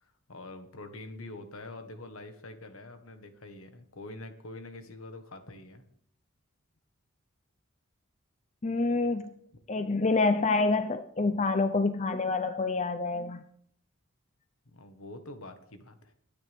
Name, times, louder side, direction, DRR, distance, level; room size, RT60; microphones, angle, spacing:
voice 1, 0.0-5.8 14.6-16.1, left 2 dB, 75° left, 7 dB, 1.7 m, -45 dB
voice 2, 8.6-9.3 9.7-13.4, left 3 dB, 30° left, 10 dB, 0.5 m, -27 dB
21.5 x 9.8 x 3.6 m, 0.64 s
head